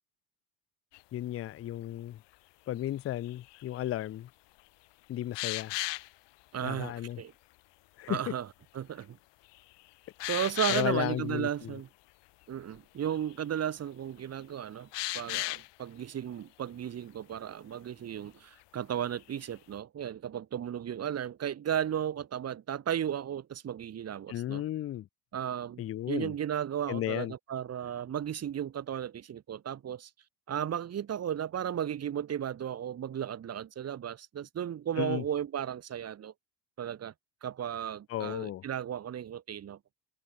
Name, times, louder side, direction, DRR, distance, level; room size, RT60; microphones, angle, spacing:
sound 1, 0.9-1.0 3.2-3.9 5.3-6.1 9.0-9.1 9.6-9.7 10.2-11.1 12.7-12.8 13.0-13.4 14.9-15.7 19.1-19.3, left 20 dB, 65° left, 2.4 m, -34 dB
voice 1, 1.1-2.2 2.7-4.3 5.1-5.8 6.6-7.2 8.0-8.2 10.7-11.8 24.3-25.1 25.8-26.3 26.9-27.3 35.0-35.2 38.1-38.6, left 13 dB, 30° left, 0.5 m, -34 dB
voice 2, 6.5-7.3 8.1-8.5 8.7-9.2 10.2-11.9 12.5-14.9 15.1-24.6 25.3-30.1 30.5-36.3 36.8-37.1 37.4-39.8, right 9 dB, 35° right, 1.4 m, -35 dB
cardioid pair, 115°, 45 cm